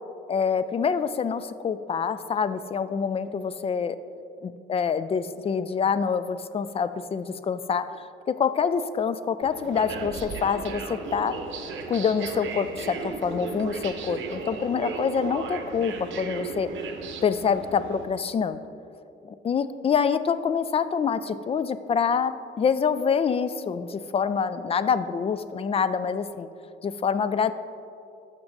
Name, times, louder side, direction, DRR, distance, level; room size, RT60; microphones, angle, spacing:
voice 1, 0.3-4.0 4.4-11.3 11.9-16.7 17.2-18.6 19.2-26.5 26.8-27.5, left 6 dB, 30° left, 13 dB, 0.4 m, -26 dB
sound 1, 9.4-18.1, right 4 dB, 75° right, 0.8 m, -35 dB
13.5 x 5.9 x 2.6 m, 2.6 s
cardioid pair, 90°, 20 cm